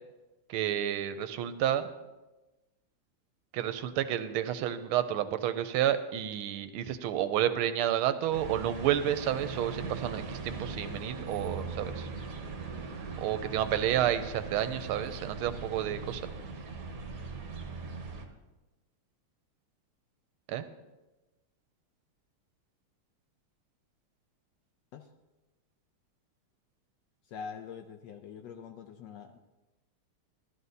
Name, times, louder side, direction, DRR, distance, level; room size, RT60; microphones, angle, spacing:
voice 1, 0.5-1.9 3.5-12.1 13.2-16.2 20.5-20.6, right 11 dB, 85° right, 11 dB, 1.5 m, -30 dB
sound 1, 8.3-18.2, right 4 dB, 50° right, 1.3 m, -40 dB
voice 2, 27.3-29.4, left 6 dB, 75° left, 6 dB, 1.1 m, -44 dB
12.5 x 12.5 x 2.7 m, 1.1 s
omnidirectional pair, 2.4 m